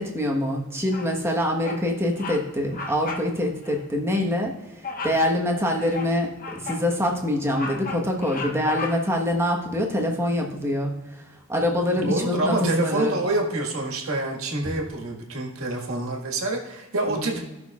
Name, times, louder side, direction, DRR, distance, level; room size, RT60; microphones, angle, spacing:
voice 1, 0.0-4.5 5.0-11.2 11.5-13.1 17.1-17.4, left 1 dB, 10° right, 0 dB, 1.1 m, -25 dB
Bird vocalization bird call bird song, 0.9-1.3 1.6-1.9 2.1-2.4 2.7-3.3 3.6-3.8 4.8-5.3 5.7-6.9 7.3-9.2, left 3 dB, 40° left, 0.8 m, -35 dB
voice 2, 12.0-17.3, right 2 dB, 70° right, 0 dB, 1.7 m, -27 dB
16.5 x 6.1 x 2.4 m, 1.1 s
head